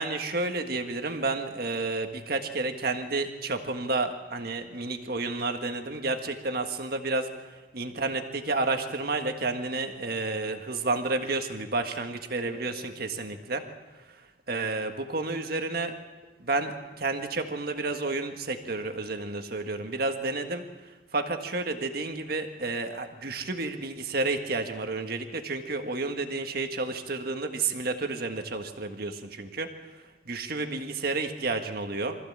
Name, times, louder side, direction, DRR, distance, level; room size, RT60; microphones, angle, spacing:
voice 1, 0.0-7.3 7.7-13.6 14.5-15.9 16.4-20.6 21.1-29.7 30.2-32.2, right 3 dB, 55° right, 6 dB, 1.6 m, -31 dB
24.5 x 15.0 x 7.4 m, 1.2 s
head